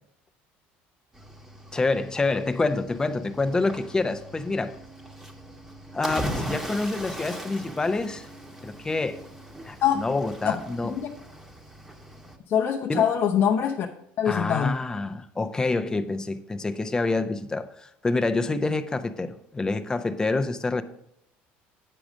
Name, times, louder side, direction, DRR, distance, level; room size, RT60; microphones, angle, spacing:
Cricket / Waves surf, 1.1-12.4, equal, 5° right, 1.2 m, -39 dB
voice 1, 1.7-4.8 5.9-8.3 8.6-9.2 9.7-10.9 12.9-13.1 14.3-20.8, left 3 dB, 15° left, 0.7 m, -27 dB
voice 2, 10.8-11.1 12.5-13.9 14.2-14.8, left 8 dB, 50° left, 0.7 m, -23 dB
8.7 x 5.0 x 6.2 m
cardioid pair, 115°, 4 cm